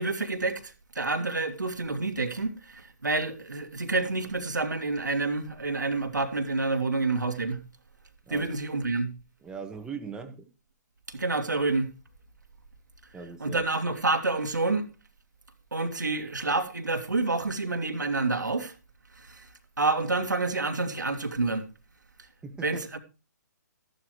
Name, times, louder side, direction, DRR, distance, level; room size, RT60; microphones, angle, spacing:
voice 1, 0.0-7.6 8.3-9.1 11.1-11.9 13.4-14.8 15.7-18.7 19.2-19.5 19.8-21.6 22.6-23.0, right 3 dB, 80° right, 2.4 m, -28 dB
voice 2, 9.4-10.4 13.1-13.6 22.4-22.8, right 5 dB, 10° right, 1.7 m, -39 dB
14.5 x 11.5 x 3.2 m
figure-of-eight pair, 130°, 10 cm